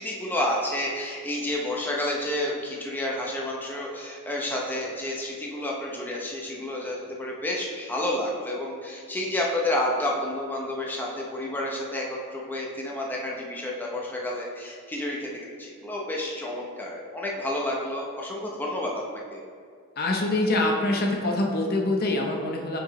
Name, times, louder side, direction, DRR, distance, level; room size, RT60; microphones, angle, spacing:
voice 1, 0.0-12.1 12.3-19.4, left 1 dB, 10° left, -3 dB, 0.7 m, -30 dB
voice 2, 20.0-22.8, left 2 dB, 45° left, 1 dB, 0.7 m, -25 dB
7.4 x 4.8 x 3.1 m, 2.2 s
head